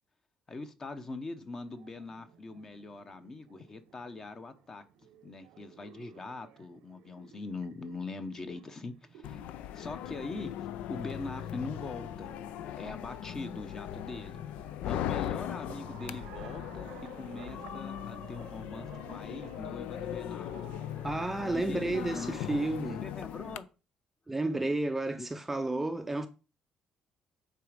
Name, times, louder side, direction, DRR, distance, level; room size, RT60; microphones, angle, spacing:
voice 1, 0.5-4.8 5.2-9.4 9.7-10.5 10.9-12.3 12.8-14.4 14.9-20.5 21.4-22.4 23.0-23.7 25.2-25.3, left 3 dB, 25° left, 0.8 m, -42 dB
sound 1, 1.7-21.5, right 10 dB, 85° right, 0.8 m, -55 dB
sound 2, 9.2-23.6, left 11 dB, 80° left, 0.4 m, -39 dB
voice 2, 21.0-23.0 24.3-26.3, right 2 dB, 10° right, 0.5 m, -31 dB
9.3 x 4.0 x 5.0 m
cardioid pair, 145°, 2 cm